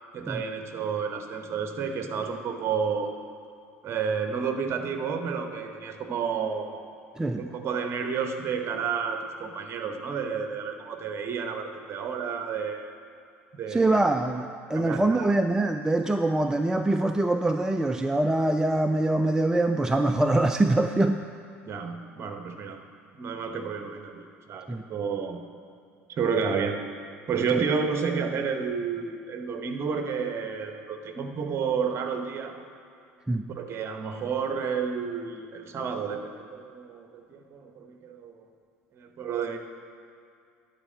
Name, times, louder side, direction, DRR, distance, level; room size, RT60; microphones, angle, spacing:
voice 1, 0.1-3.1 3.8-6.8 7.4-12.9 13.5-14.0 14.7-15.3 21.6-22.8 23.1-25.4 26.1-26.8 27.3-32.5 33.5-38.4 39.0-39.6, right 6 dB, 40° right, 6 dB, 0.9 m, -31 dB
voice 2, 7.2-7.5 13.7-21.3 24.7-24.8 27.5-27.6 33.3-33.5, right 2 dB, 10° right, 7 dB, 0.3 m, -24 dB
10.5 x 4.6 x 7.3 m, 2.4 s
figure-of-eight pair, 65°, 7 cm